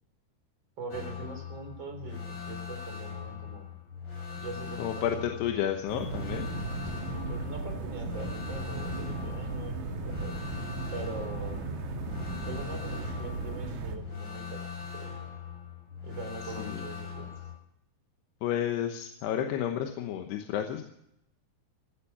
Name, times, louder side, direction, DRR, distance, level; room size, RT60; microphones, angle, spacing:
voice 1, 0.8-3.7 4.3-5.6 6.1-11.6 12.5-14.6 14.9-15.1 16.0-17.3, right 3 dB, 30° right, 5 dB, 4.0 m, -43 dB
sound 1, 0.9-17.5, left 7 dB, 30° left, 7.1 m, -41 dB
voice 2, 4.8-6.5 16.6-16.7 18.4-20.8, left 10 dB, 85° left, 4 dB, 3.2 m, -31 dB
sound 2, 5.9-14.0, right 3 dB, 55° right, 2.9 m, -36 dB
17.5 x 13.5 x 5.8 m, 0.79 s
omnidirectional pair, 4.7 m